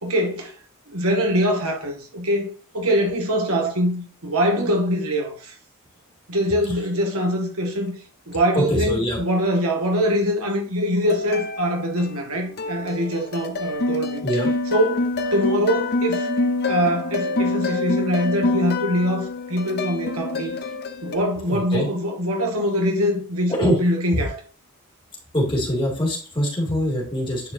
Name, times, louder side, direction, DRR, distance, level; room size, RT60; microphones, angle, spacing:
voice 1, 0.0-0.5 0.9-2.5 2.7-5.6 6.3-7.9 8.3-14.2 14.7-16.3 16.7-20.5 21.0-24.4, equal, 70° right, 1.8 m, -23 dB
voice 2, 8.5-9.2 14.2-14.5 21.5-21.9 23.5-23.8 25.3-27.5, equal, 25° left, 2.5 m, -23 dB
sound 1, 11.1-12.3 12.6-21.1, left 2 dB, 45° left, 0.7 m, -26 dB
10.5 x 4.4 x 2.8 m
head